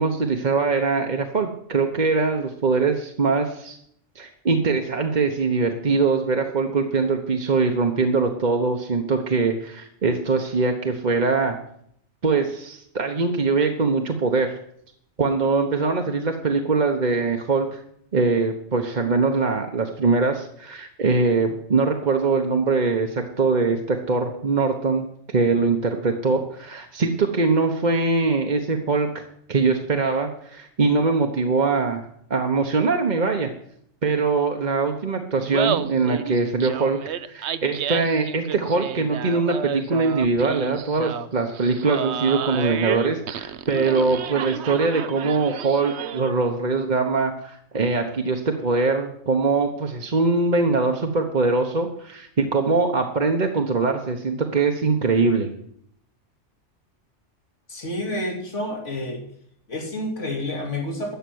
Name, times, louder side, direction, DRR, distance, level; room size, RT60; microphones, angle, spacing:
voice 1, 0.0-3.8 4.1-11.6 12.2-14.6 15.2-17.8 18.1-29.1 29.5-32.0 32.3-33.5 34.0-55.5, right 4 dB, 40° right, 4 dB, 1.1 m, -22 dB
Laughter, 35.4-46.4, right 9 dB, 70° right, 0.9 m, -31 dB
voice 2, 57.7-59.2 59.7-61.2, left 1 dB, 80° left, 1 dB, 3.0 m, -29 dB
14.0 x 5.9 x 9.4 m, 0.68 s
omnidirectional pair, 1.2 m